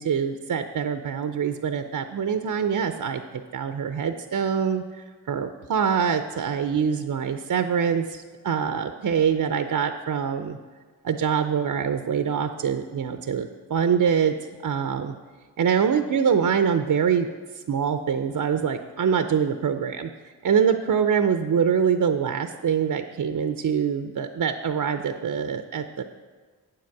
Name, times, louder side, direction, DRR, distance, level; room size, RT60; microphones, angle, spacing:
voice 1, 0.0-3.2 3.5-10.6 11.0-14.3 14.6-15.1 15.6-17.3 17.7-20.1 20.4-26.0, right 7 dB, 55° right, 8 dB, 0.6 m, -24 dB
8.8 x 7.6 x 4.6 m, 1.5 s
cardioid pair, 45°, 40 cm